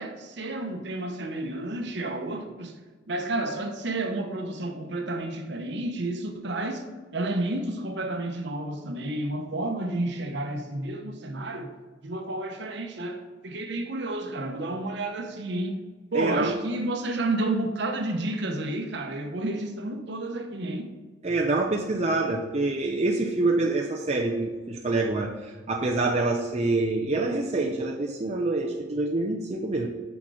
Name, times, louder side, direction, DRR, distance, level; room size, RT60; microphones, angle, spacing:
voice 1, 0.0-2.8 3.1-11.7 12.0-15.8 16.1-20.9, right 2 dB, 60° right, 0.9 m, -31 dB
voice 2, 16.1-16.5 21.2-29.9, right 2 dB, 35° right, 0.6 m, -26 dB
6.2 x 5.9 x 4.9 m
head